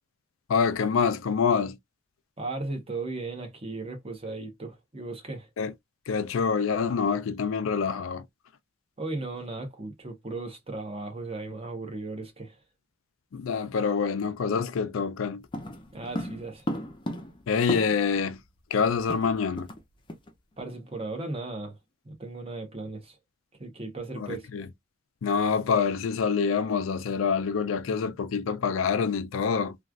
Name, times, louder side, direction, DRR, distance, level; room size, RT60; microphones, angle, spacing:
voice 1, 0.5-1.8 5.6-5.7 6.1-8.2 13.3-15.4 17.5-18.4 18.7-19.7 24.2-24.7 25.2-29.8, left 6 dB, 75° left, 0.4 m, -26 dB
voice 2, 2.4-5.5 9.0-12.6 15.9-16.7 20.6-21.8 22.0-23.2 23.6-24.5, right 2 dB, 30° right, 0.9 m, -36 dB
sound 1, 15.5-18.2 18.5-18.6 18.8-19.8 20.1-20.3 20.7-20.9, equal, 25° left, 0.5 m, -35 dB
3.1 x 2.3 x 2.4 m
head